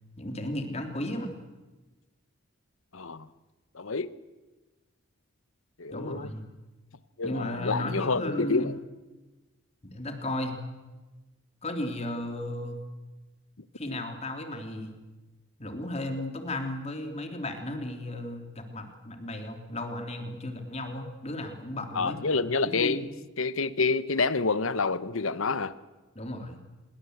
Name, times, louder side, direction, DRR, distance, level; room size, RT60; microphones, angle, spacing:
voice 1, 0.2-1.4 5.9-6.4 7.2-8.7 9.8-10.6 11.6-12.8 13.7-14.9 15.6-22.3 22.6-23.1 26.1-26.6, left 1 dB, 30° left, 3.2 m, -34 dB
voice 2, 2.9-3.3 3.7-4.1 5.8-6.3 7.2-8.8 21.9-23.0 23.4-25.7, left 4 dB, 75° left, 1.1 m, -28 dB
27.0 x 21.5 x 8.1 m
head